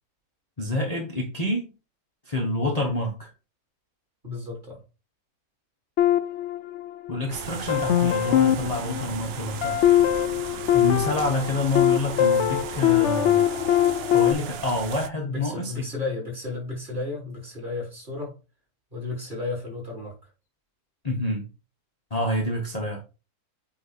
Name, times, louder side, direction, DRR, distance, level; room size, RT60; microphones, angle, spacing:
voice 1, 0.6-1.7 2.3-3.3 7.1-9.8 10.7-13.4 14.1-15.8 21.0-21.5 22.1-23.0, left 1 dB, 25° left, 1.2 m, -27 dB
voice 2, 4.2-4.8 10.8-11.0 15.3-18.3 18.9-20.2, left 3 dB, 30° right, 4.3 m, -33 dB
sound 1, 6.0-7.2 7.7-14.3, left 11 dB, 65° left, 0.7 m, -22 dB
sound 2, 7.3-15.1, right 9 dB, 70° right, 0.6 m, -37 dB
8.3 x 3.3 x 4.3 m
omnidirectional pair, 1.6 m